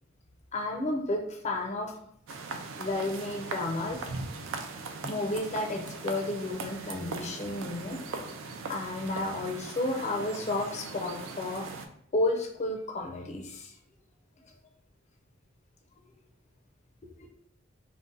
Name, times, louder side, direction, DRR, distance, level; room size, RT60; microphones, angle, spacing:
voice 1, 0.5-1.9 2.8-4.1 5.0-8.0 8.7-11.7 12.1-13.7 17.2-17.3, left 2 dB, 35° left, 2 dB, 0.4 m, -32 dB
sound 1, 2.3-11.9, right 4 dB, 70° right, 0.4 m, -40 dB
2.5 x 2.1 x 3.8 m, 0.67 s
head